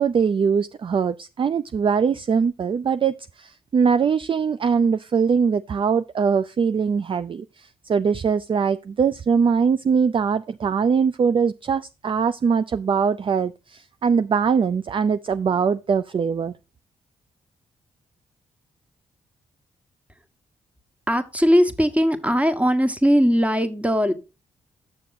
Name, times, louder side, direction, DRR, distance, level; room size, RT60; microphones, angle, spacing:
voice 1, 0.0-16.5, right 6 dB, 35° right, 0.4 m, -22 dB
voice 2, 21.1-24.1, equal, 10° right, 1.3 m, -19 dB
8.5 x 6.7 x 4.0 m
hypercardioid pair, 40°, 15 cm